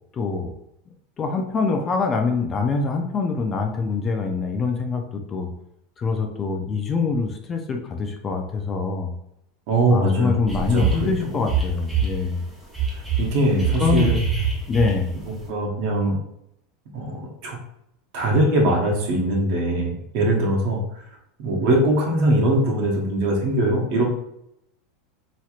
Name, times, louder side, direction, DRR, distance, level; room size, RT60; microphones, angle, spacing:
voice 1, 0.1-0.5 1.2-5.5 6.0-9.1 9.9-12.4 13.8-14.2 14.7-15.1, left 4 dB, 25° left, 4 dB, 0.4 m, -24 dB
voice 2, 9.7-11.4 13.2-14.2 15.3-16.2 16.9-17.6 18.1-20.8 21.4-24.2, right 1 dB, 60° right, 0 dB, 1.0 m, -21 dB
sound 1, 10.5-11.1 11.4-12.2 12.7-15.2, right 6 dB, 5° right, 0.9 m, -24 dB
3.0 x 2.8 x 2.4 m, 0.77 s
supercardioid pair, 135°, 0 cm